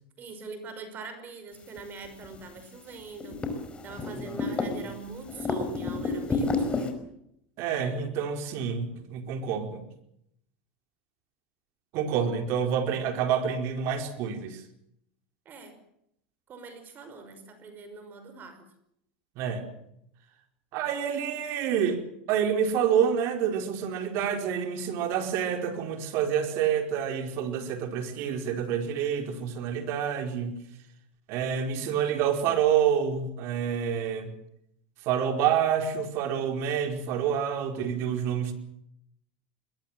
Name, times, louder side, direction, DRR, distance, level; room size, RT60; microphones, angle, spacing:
voice 1, 0.2-3.4 3.8-7.0 15.5-15.8 16.5-18.7, right 4 dB, 40° right, 9 dB, 5.5 m, -43 dB
sound 1, 1.8-1.9 2.0-2.6 2.9-4.9 5.2-6.9, left 3 dB, 20° left, 5.3 m, -30 dB
voice 2, 7.6-9.8 11.9-14.6 19.4-19.7 20.7-22.0 22.3-30.5 31.3-34.3 35.0-38.5, right 8 dB, 60° right, 6 dB, 4.8 m, -28 dB
22.0 x 21.5 x 7.6 m, 0.75 s
supercardioid pair, 105°, 5 cm